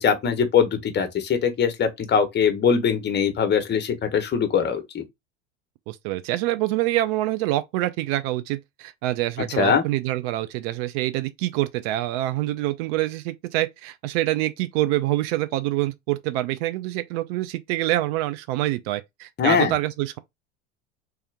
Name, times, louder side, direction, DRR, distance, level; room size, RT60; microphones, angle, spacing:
voice 1, 0.0-5.0 9.6-9.8 19.4-19.7, left 7 dB, 25° left, 1.1 m, -22 dB
voice 2, 5.9-20.2, right 15 dB, 55° right, 0.5 m, -26 dB
3.4 x 2.9 x 3.4 m
hypercardioid pair, 80°, 37 cm